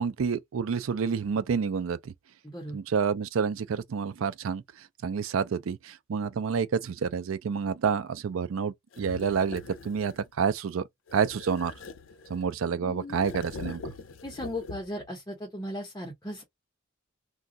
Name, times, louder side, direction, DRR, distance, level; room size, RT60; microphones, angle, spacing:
voice 1, 0.0-2.1 2.7-4.6 5.0-10.8 11.1-11.7 12.3-13.9, right 6 dB, 85° right, 0.4 m, -29 dB
voice 2, 2.4-2.8 12.8-13.2 14.2-16.4, left 1 dB, 15° left, 0.8 m, -37 dB
sound 1, 8.9-10.3 11.1-12.6 13.1-15.1, left 4 dB, 80° left, 0.5 m, -43 dB
2.5 x 2.3 x 3.8 m
head